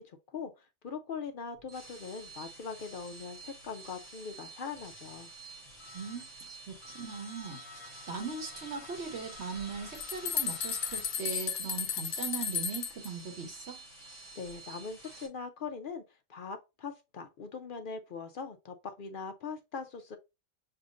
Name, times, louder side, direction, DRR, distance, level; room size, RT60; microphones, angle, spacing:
voice 1, 0.0-5.3 14.4-16.0 16.3-20.2, left 5 dB, 55° left, 0.6 m, -41 dB
sound 1, 1.5-15.3, right 2 dB, 20° right, 1.2 m, -49 dB
voice 2, 5.9-13.8, right 5 dB, 60° right, 1.2 m, -40 dB
sound 2, 9.6-13.1, left 8 dB, 80° left, 1.0 m, -34 dB
6.8 x 2.5 x 2.4 m
omnidirectional pair, 1.4 m